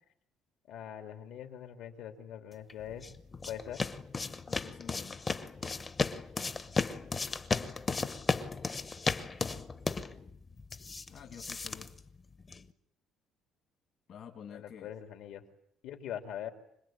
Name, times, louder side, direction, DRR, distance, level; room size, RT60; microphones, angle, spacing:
voice 1, 0.7-3.1 3.5-3.8 14.5-15.4 15.8-16.5, left 10 dB, 70° left, 5 dB, 3.2 m, -42 dB
sound 1, 2.7-12.7, left 4 dB, 20° left, 0.9 m, -35 dB
voice 2, 4.5-5.4 11.1-12.0 14.1-14.9, left 8 dB, 45° left, 5 dB, 1.8 m, -49 dB
26.0 x 20.5 x 9.0 m, 0.73 s
cardioid pair, 175°, 0 cm